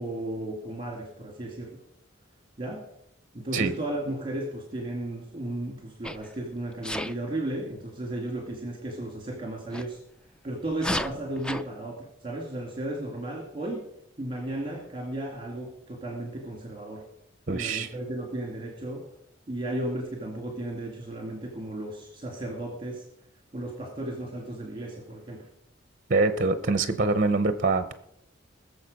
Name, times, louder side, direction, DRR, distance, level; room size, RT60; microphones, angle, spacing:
voice 1, 0.0-1.8 2.6-2.8 3.3-10.0 10.4-13.8 14.2-17.0 17.5-19.1 19.5-23.0 23.5-25.5, right 1 dB, 25° right, 1 dB, 2.1 m, -34 dB
Sneeze, 6.0-6.3 6.8-7.2 9.7-9.9 10.7-11.6, left 1 dB, 5° left, 0.4 m, -32 dB
voice 2, 17.5-17.9 26.1-27.9, right 3 dB, 40° right, 10 dB, 0.7 m, -24 dB
20.5 x 6.9 x 5.3 m, 0.78 s
head